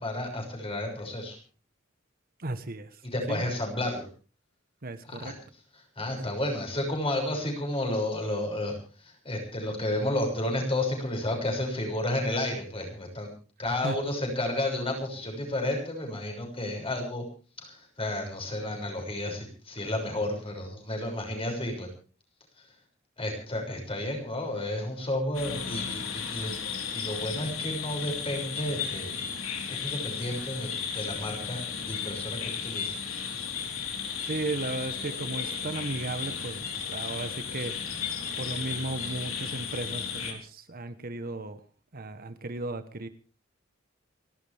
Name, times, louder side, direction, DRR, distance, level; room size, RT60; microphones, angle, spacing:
voice 1, 0.0-1.4 3.1-4.0 5.1-5.3 6.0-13.3 13.6-17.2 17.6-21.9 22.6-22.7 23.2-26.6 26.9-29.2 29.7-33.0, left 1 dB, 30° left, 2 dB, 6.5 m, -32 dB
voice 2, 2.4-3.4 4.8-5.4 6.0-6.2 13.8-14.0 34.2-38.1 38.4-41.6 41.9-43.1, right 2 dB, 45° right, 10 dB, 1.2 m, -35 dB
sound 1, 25.3-40.3, left 6 dB, 90° left, 4.1 m, -34 dB
29.5 x 12.5 x 3.5 m, 0.36 s
head